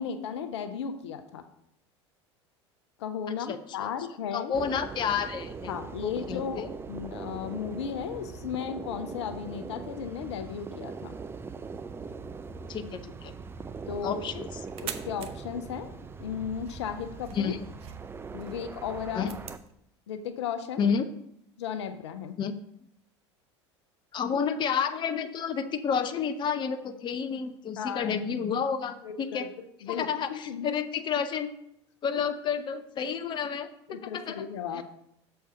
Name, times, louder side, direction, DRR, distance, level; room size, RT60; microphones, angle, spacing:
voice 1, 0.0-1.5 3.0-4.5 5.7-11.1 13.9-14.2 14.8-15.9 16.2-17.5 18.3-19.3 20.1-20.8 21.6-22.4 27.8-28.1 29.0-30.7 33.9-34.8, left 7 dB, 70° left, 9 dB, 0.7 m, -35 dB
voice 2, 3.5-3.9 4.3-5.7 6.0-6.7 12.7-13.3 14.0-14.5 17.3-17.6 19.1-19.3 20.8-21.0 22.4-22.5 24.1-29.5 29.9-31.5 32.0-34.5 34.7-34.8, left 7 dB, 30° left, 9 dB, 0.6 m, -30 dB
sound 1, 4.5-19.6, right 4 dB, 15° right, 0.4 m, -41 dB
sound 2, 13.9-19.7, right 9 dB, 40° right, 0.8 m, -46 dB
6.8 x 4.5 x 6.4 m, 0.76 s
figure-of-eight pair, 75°, 15 cm